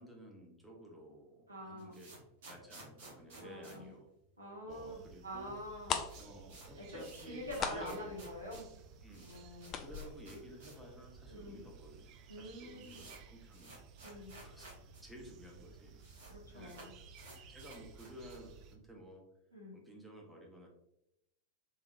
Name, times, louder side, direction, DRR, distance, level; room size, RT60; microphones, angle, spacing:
voice 1, 0.0-2.1 2.5-4.1 4.7-5.6 6.2-8.1 8.5-8.6 9.0-12.1 12.4-13.8 14.4-14.7 15.0-16.8 17.5-19.2 19.7-20.7, equal, 5° right, -2 dB, 0.9 m, -53 dB
sound 1, 1.5-4.8 5.0-5.1 5.4-5.5 5.7-10.9 11.2-11.3 12.0-12.1 12.3-15.0 15.3-15.4 15.6-16.3 16.6-18.5, right 2 dB, 55° right, 1.2 m, -56 dB
voice 2, 1.5-2.0 3.4-3.9 4.4-6.0 6.8-8.7 9.2-9.7 11.3-11.6 12.3-13.0 14.0-14.4 16.2-16.9 19.5-19.8, equal, 80° right, -3 dB, 1.2 m, -46 dB
sound 2, 4.7-18.8, right 5 dB, 40° right, 0.4 m, -56 dB
sound 3, 5.6-5.7 5.8-11.4 11.7-11.8 12.2-12.4 12.7-12.8, left 7 dB, 30° left, 0.3 m, -41 dB
3.5 x 3.4 x 2.5 m, 0.82 s
figure-of-eight pair, 90°, 0 cm